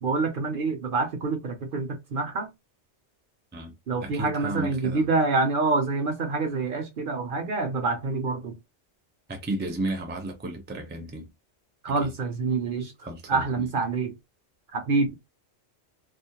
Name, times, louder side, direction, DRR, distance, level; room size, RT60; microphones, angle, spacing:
voice 1, 0.0-2.5 3.9-8.6 11.8-12.9 13.3-14.1 14.7-15.2, right 3 dB, 55° right, 0.7 m, -26 dB
voice 2, 4.0-5.1 9.3-11.3 12.0-12.1 13.0-13.7, right 1 dB, 15° right, 0.4 m, -33 dB
2.4 x 2.0 x 2.8 m
omnidirectional pair, 1.2 m